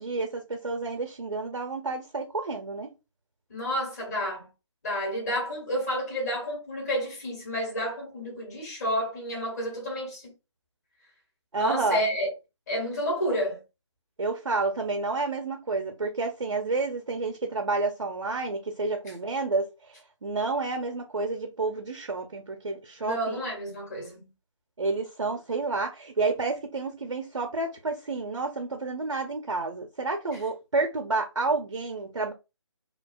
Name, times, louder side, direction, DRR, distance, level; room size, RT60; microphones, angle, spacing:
voice 1, 0.0-2.9 11.5-12.0 14.2-23.4 24.8-32.3, right 3 dB, 70° right, 0.5 m, -30 dB
voice 2, 3.5-4.5 4.8-10.3 11.6-12.3 12.7-13.6 23.0-24.3, equal, 35° left, 1.2 m, -30 dB
2.4 x 2.2 x 2.3 m
figure-of-eight pair, 155°, 16 cm